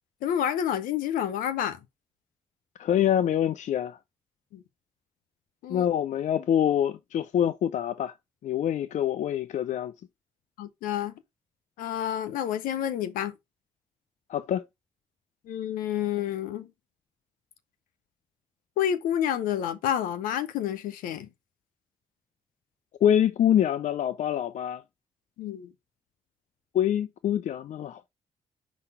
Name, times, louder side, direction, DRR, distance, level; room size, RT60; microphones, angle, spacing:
voice 1, 0.2-1.8 4.5-4.6 5.6-5.9 10.6-11.1 11.8-13.3 15.4-16.7 18.8-21.3 25.4-25.7, left 10 dB, 75° left, 0.8 m, -29 dB
voice 2, 2.8-4.0 5.7-8.1 8.4-9.9 14.3-14.7 23.0-24.8 26.7-28.1, left 10 dB, 55° left, 0.4 m, -25 dB
5.4 x 4.0 x 4.7 m
hypercardioid pair, 40°, 14 cm